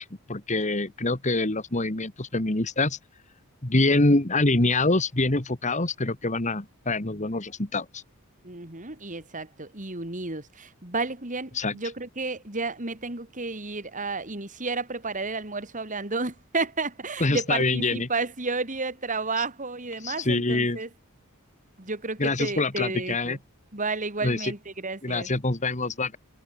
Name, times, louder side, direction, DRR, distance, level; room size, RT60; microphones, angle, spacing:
voice 1, 0.0-3.0 3.6-8.0 11.5-11.8 17.2-18.1 20.0-20.8 22.2-23.4 24.2-24.5 25.0-26.2, left 2 dB, 35° left, 2.0 m, -25 dB
voice 2, 8.4-20.9 21.8-23.4 23.7-25.3, right 3 dB, 35° right, 3.3 m, -32 dB
head